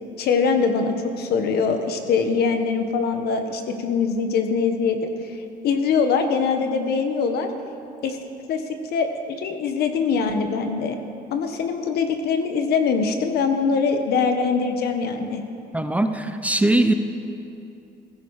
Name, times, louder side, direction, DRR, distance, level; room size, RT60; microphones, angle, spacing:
voice 1, 0.2-5.1 5.6-7.5 8.0-8.2 8.5-8.6 8.9-11.0 11.3-15.4, left 5 dB, 70° left, 6 dB, 1.4 m, -23 dB
voice 2, 15.7-16.9, right 1 dB, 10° right, 8 dB, 0.8 m, -20 dB
16.5 x 15.0 x 4.9 m, 2.6 s
cardioid pair, 110°, 17 cm